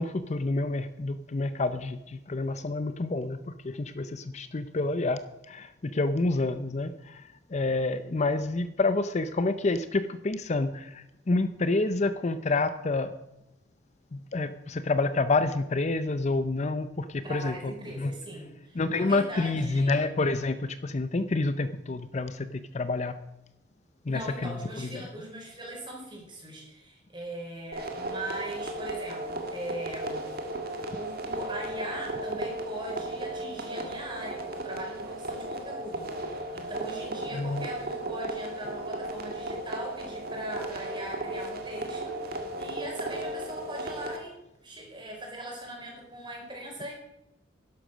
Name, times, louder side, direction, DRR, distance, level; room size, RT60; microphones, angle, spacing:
voice 1, 0.0-5.2 5.5-13.1 14.1-18.1 18.8-23.2 24.1-25.0 37.3-37.7, left 3 dB, 35° left, 12 dB, 0.5 m, -28 dB
voice 2, 17.2-20.0 24.1-30.3 30.9-44.3 44.6-46.9, right 1 dB, 25° right, 0 dB, 4.5 m, -40 dB
sound 1, 27.7-44.2, right 1 dB, 50° right, 1.9 m, -35 dB
11.5 x 11.5 x 6.3 m, 0.88 s
head